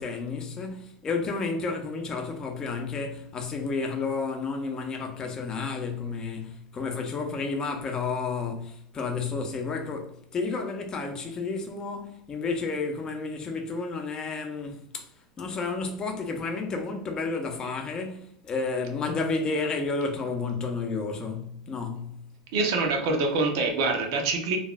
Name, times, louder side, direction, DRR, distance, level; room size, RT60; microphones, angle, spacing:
voice 1, 0.0-15.1 15.4-22.2, left 4 dB, 30° left, 0.7 m, -31 dB
voice 2, 22.5-24.6, right 3 dB, 70° right, 0.7 m, -25 dB
3.2 x 2.5 x 2.4 m
hypercardioid pair, 100°, 2 cm